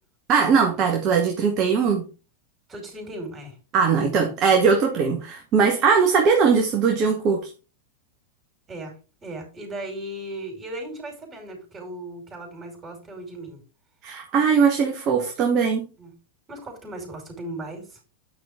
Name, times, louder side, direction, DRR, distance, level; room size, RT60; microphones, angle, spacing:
voice 1, 0.3-2.1 3.7-7.5 14.0-15.9, right 5 dB, 35° right, 3 dB, 1.7 m, -20 dB
voice 2, 2.7-3.6 8.7-8.9 9.2-13.6 16.0-16.1 16.5-18.0, right 1 dB, 20° right, 2 dB, 5.4 m, -36 dB
9.7 x 6.2 x 3.8 m, 0.33 s
figure-of-eight pair, 90°, 0 cm